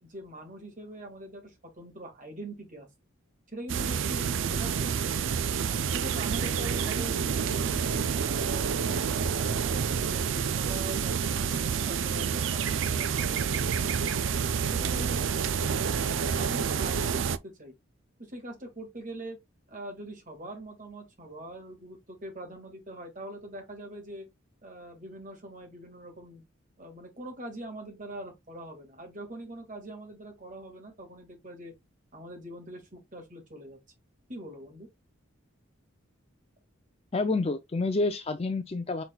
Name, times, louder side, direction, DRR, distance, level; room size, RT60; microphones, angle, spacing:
voice 1, 0.0-2.9 3.5-5.3 5.9-9.0 9.3-14.2 14.7-15.9 16.3-17.7 18.2-19.4 19.7-24.3 24.6-26.4 26.8-31.7 32.1-33.8 34.3-34.9, right 1 dB, 40° right, 1.9 m, -43 dB
sound 1, 3.7-17.4, right 6 dB, 65° right, 0.4 m, -28 dB
voice 2, 37.1-39.0, left 3 dB, 30° left, 0.4 m, -28 dB
6.0 x 3.9 x 2.3 m
head